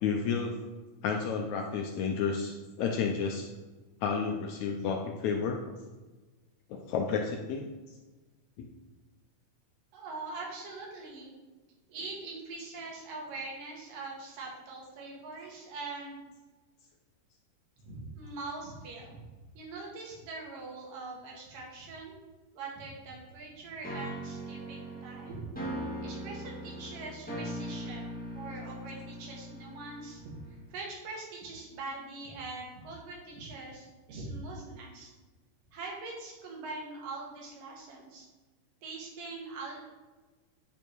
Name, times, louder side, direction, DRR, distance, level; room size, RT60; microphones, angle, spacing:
voice 1, 0.0-0.6 1.0-3.5 4.0-5.7 6.7-7.7 8.6-8.7, left 5 dB, 80° left, 3 dB, 1.7 m, -31 dB
voice 2, 9.9-11.3 11.9-16.2 17.8-19.2 19.6-22.2 22.5-25.4 26.0-30.3 30.7-35.1 35.7-38.3 38.8-39.9, right 3 dB, 75° right, -2 dB, 3.4 m, -42 dB
sound 1, 23.8-30.7, right 1 dB, 5° left, 0.9 m, -40 dB
9.2 x 5.4 x 4.6 m, 1.3 s
omnidirectional pair, 3.9 m